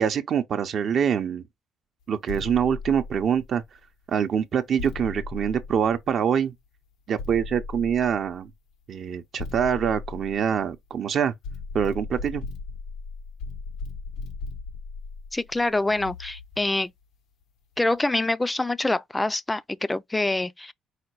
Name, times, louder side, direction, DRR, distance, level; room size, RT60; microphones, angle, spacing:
voice 1, 0.0-1.4 2.1-3.6 4.1-6.5 7.1-8.5 8.9-11.3 11.7-12.4, right 8 dB, 60° right, 0.6 m, -25 dB
sound 1, 2.3-3.8 4.8-6.4 7.2-8.5 9.4-11.0 11.4-16.7, left 4 dB, 90° left, 1.0 m, -37 dB
voice 2, 15.3-16.9 17.8-20.7, left 2 dB, 15° left, 0.4 m, -25 dB
4.9 x 2.2 x 4.5 m
supercardioid pair, 75°, 0 cm